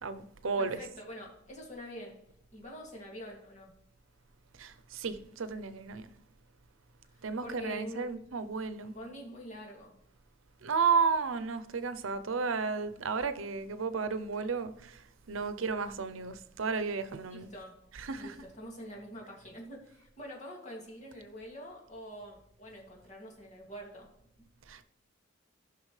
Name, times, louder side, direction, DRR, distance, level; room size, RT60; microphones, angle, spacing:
voice 1, 0.0-0.8 4.6-6.1 7.2-8.9 10.6-17.5 17.9-18.4 24.7-24.8, right 5 dB, 85° right, 0.7 m, -33 dB
voice 2, 0.6-2.2 2.5-3.7 7.4-8.2 8.8-9.9 17.3-17.7 18.2-24.1, equal, 40° left, 2.4 m, -45 dB
15.0 x 6.0 x 3.3 m
head